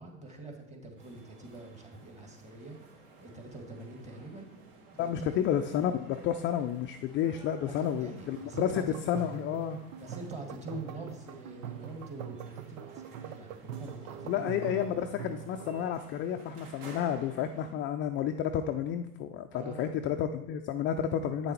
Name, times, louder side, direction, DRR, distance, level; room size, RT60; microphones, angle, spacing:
voice 1, 0.0-4.5 5.0-5.4 7.7-9.0 10.0-14.9 19.5-19.9, right 2 dB, 15° right, 2 dB, 2.0 m, -45 dB
sound 1, 1.0-17.7, right 3 dB, 50° right, 2.0 m, -54 dB
voice 2, 5.0-9.8 14.3-21.5, left 9 dB, 30° left, 6 dB, 0.4 m, -31 dB
sound 2, 8.4-15.9, right 9 dB, 85° right, 0.7 m, -43 dB
8.6 x 6.7 x 4.4 m, 0.85 s
hypercardioid pair, 110°, 41 cm